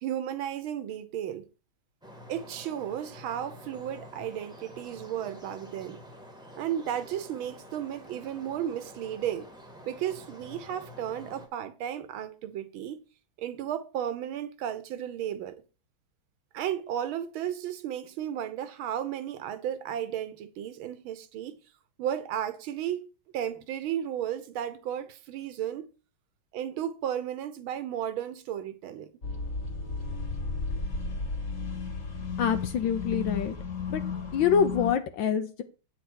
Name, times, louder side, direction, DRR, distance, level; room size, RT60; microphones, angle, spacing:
voice 1, 0.0-1.5 2.3-6.0 6.6-9.5 9.9-13.0 13.4-15.6 16.5-21.6 22.0-23.1 23.3-25.9 26.5-29.1, right 10 dB, 80° right, 1.6 m, -34 dB
sound 1, 2.0-11.5, equal, 5° right, 1.1 m, -48 dB
sound 2, 29.2-34.9, left 4 dB, 40° left, 2.0 m, -33 dB
voice 2, 32.4-33.6 33.9-34.0 34.3-35.6, left 7 dB, 70° left, 1.4 m, -26 dB
8.8 x 4.6 x 6.2 m
omnidirectional pair, 2.3 m